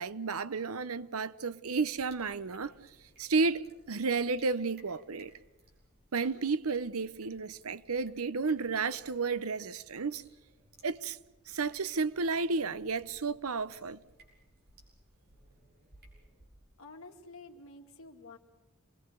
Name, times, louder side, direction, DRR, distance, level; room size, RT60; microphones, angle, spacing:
voice 1, 0.0-2.7 3.2-5.3 6.1-10.2 10.8-11.2 11.5-14.0, right 4 dB, 85° right, 0.8 m, -32 dB
sound 1, 1.6-16.5, right 2 dB, 45° right, 6.3 m, -62 dB
voice 2, 16.8-18.4, left 3 dB, 75° left, 2.5 m, -50 dB
27.5 x 21.0 x 6.9 m
head